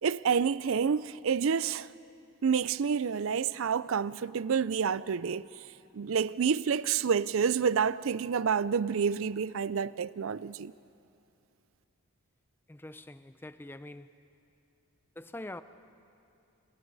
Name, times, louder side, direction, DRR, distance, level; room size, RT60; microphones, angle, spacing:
voice 1, 0.0-1.9 2.4-5.6 5.9-10.7, right 6 dB, 60° right, 0.4 m, -28 dB
voice 2, 12.7-14.1 15.2-15.6, left 1 dB, 10° left, 0.5 m, -44 dB
29.0 x 28.0 x 4.1 m
head